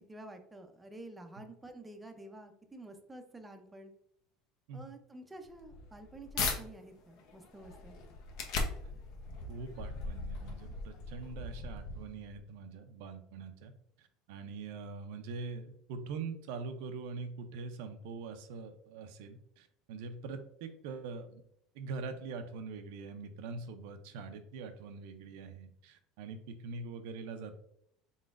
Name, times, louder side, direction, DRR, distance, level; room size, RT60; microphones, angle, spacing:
voice 1, 0.1-3.9 4.7-8.0, right 2 dB, 10° right, 5 dB, 0.5 m, -50 dB
sound 1, 5.4-6.6 7.1-12.4, left 4 dB, 60° left, 0.7 m, -39 dB
voice 2, 9.5-13.7 14.0-21.5 21.7-27.6, right 4 dB, 80° right, 7 dB, 0.5 m, -43 dB
3.9 x 3.7 x 2.5 m, 0.72 s
supercardioid pair, 135°, 0 cm